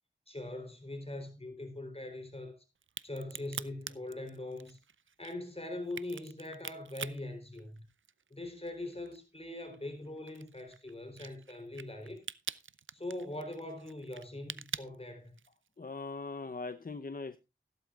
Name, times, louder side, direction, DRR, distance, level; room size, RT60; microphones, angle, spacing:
voice 1, 0.3-2.6 3.0-4.8 5.2-7.8 8.3-12.2 12.9-15.3, left 1 dB, 30° left, 3.5 m, -42 dB
Crack, 2.8-8.3 8.7-15.7, right 7 dB, 85° right, 0.5 m, -45 dB
voice 2, 15.8-17.4, left 3 dB, 45° left, 0.8 m, -40 dB
15.0 x 12.5 x 2.4 m
wide cardioid pair, 55°, 20 cm